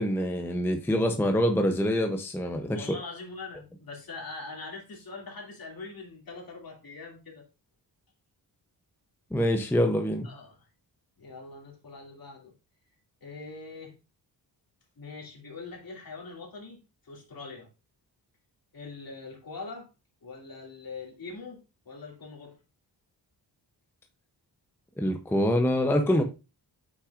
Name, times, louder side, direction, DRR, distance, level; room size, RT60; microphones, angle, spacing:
voice 1, 0.0-2.9 9.3-10.3 25.0-26.2, equal, 5° left, 0.6 m, -25 dB
voice 2, 2.7-7.4 10.2-10.6 11.2-12.5 13.2-13.9 15.0-16.8 17.0-17.7 18.7-19.9 20.2-21.6 21.9-22.6, left 3 dB, 55° left, 2.5 m, -42 dB
8.2 x 5.8 x 2.4 m
wide cardioid pair, 160°, 41 cm